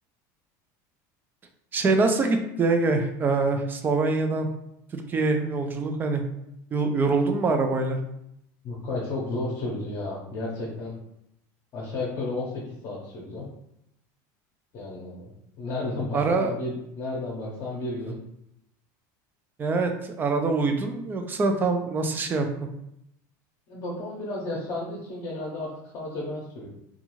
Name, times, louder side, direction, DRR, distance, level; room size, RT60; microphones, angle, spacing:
voice 1, 1.7-4.5 4.9-6.2 6.7-8.0 16.1-16.5 19.6-22.5, right 3 dB, 20° right, 5 dB, 0.3 m, -24 dB
voice 2, 8.6-10.9 11.7-13.4 14.7-18.2 23.7-26.7, left 2 dB, 45° left, -4 dB, 0.7 m, -33 dB
2.5 x 2.3 x 3.0 m, 0.79 s
supercardioid pair, 145°, 10 cm